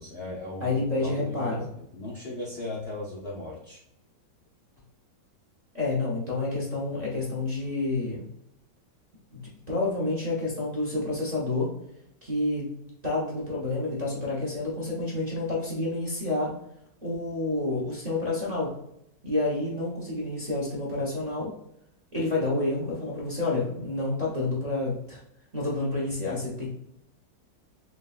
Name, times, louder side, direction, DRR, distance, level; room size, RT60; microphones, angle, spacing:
voice 1, 0.0-3.8, left 2 dB, 85° left, -5 dB, 0.5 m, -37 dB
voice 2, 0.6-1.7 5.7-8.2 9.3-9.4 9.7-11.7 12.2-12.7 13.0-16.5 17.0-18.7 19.2-21.5 22.1-25.2 25.5-26.7, left 2 dB, 35° right, -5 dB, 0.7 m, -29 dB
6.4 x 2.4 x 2.4 m, 0.77 s
omnidirectional pair, 2.0 m